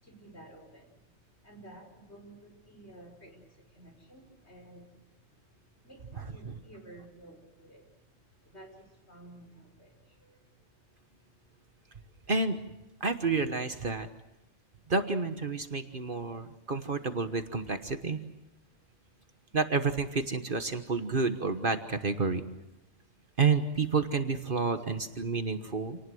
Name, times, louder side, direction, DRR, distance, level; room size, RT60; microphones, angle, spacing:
voice 1, 0.0-1.1 1.4-5.2 5.8-7.9 8.4-10.4, right 1 dB, 60° left, 2 dB, 5.7 m, -53 dB
voice 2, 6.1-6.6 12.3-12.6 13.0-14.1 14.9-18.2 19.5-22.4 23.4-26.0, right 4 dB, 45° right, 9 dB, 1.4 m, -30 dB
28.0 x 19.0 x 7.8 m, 0.93 s
omnidirectional pair, 1.3 m